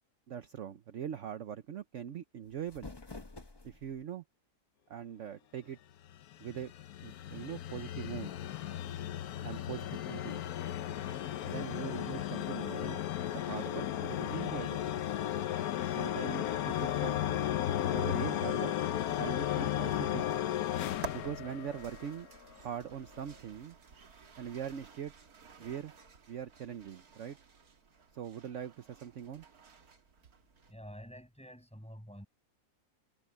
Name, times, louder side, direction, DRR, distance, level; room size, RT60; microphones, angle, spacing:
voice 1, 0.3-2.9 3.6-4.2 4.9-5.8 6.4-6.7 7.0-8.4 9.4-10.4 11.4-13.0 13.3-14.8 16.0-17.2 17.9-18.7 19.2-20.3 21.1-22.3 22.6-23.8 24.4-25.1 25.6-25.9 26.3-27.4 28.1-29.5, right 8 dB, 60° right, 1.1 m, -41 dB
sound 1, 2.4-4.0, left 3 dB, 20° left, 0.9 m, -49 dB
sound 2, 6.1-22.2, left 11 dB, 80° left, 1.2 m, -35 dB
sound 3, 15.9-30.7, right 5 dB, 80° right, 2.4 m, -53 dB
voice 2, 30.7-32.3, equal, 5° left, 6.8 m, -48 dB
omnidirectional pair, 1.6 m